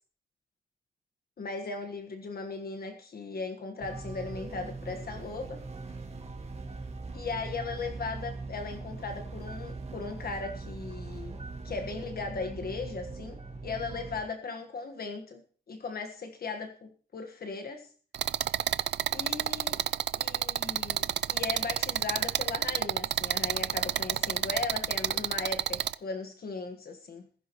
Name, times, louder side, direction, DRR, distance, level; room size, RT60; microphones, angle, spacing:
voice 1, 1.4-5.6 7.1-15.4 15.7-17.9 19.1-19.8 20.1-27.2, left 4 dB, 60° left, 5 dB, 1.5 m, -37 dB
sound 1, 3.8-14.2, right 3 dB, 35° right, 1.8 m, -41 dB
sound 2, 18.1-25.9, right 10 dB, 80° right, 0.5 m, -29 dB
15.5 x 15.5 x 3.1 m, 0.42 s
wide cardioid pair, 145°, 18 cm